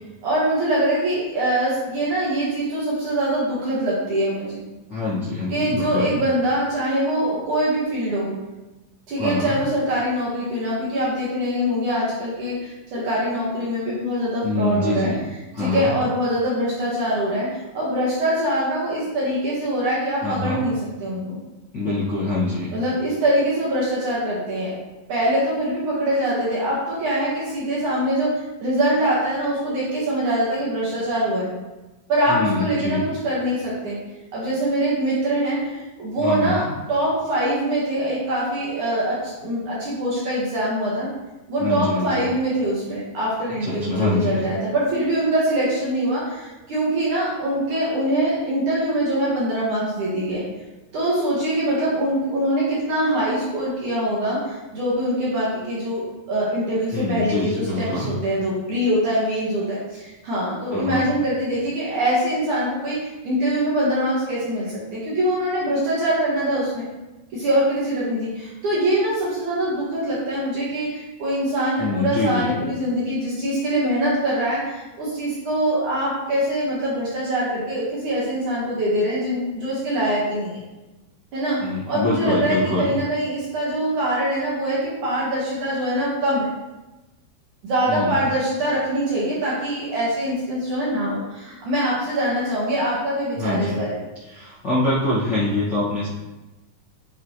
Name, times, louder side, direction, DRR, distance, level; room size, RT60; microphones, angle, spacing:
voice 1, 0.2-4.7 5.5-8.3 9.1-15.1 15.6-21.4 22.7-24.7 25.1-31.5 32.1-34.0 34.3-41.1 41.5-50.4 50.9-66.9 67.3-80.6 81.3-86.5 87.6-94.0, right 1 dB, 55° right, -7 dB, 2.5 m, -23 dB
voice 2, 4.9-6.1 9.2-9.6 14.4-15.2 15.5-15.9 20.2-20.6 21.7-22.7 32.3-33.0 36.2-36.7 41.6-42.2 43.6-44.4 56.9-58.1 60.7-61.0 71.8-72.5 81.6-82.9 87.9-88.1 93.4-93.8 94.3-96.1, left 2 dB, 45° left, -11 dB, 1.4 m, -25 dB
9.3 x 5.9 x 3.2 m, 1.1 s
omnidirectional pair, 5.2 m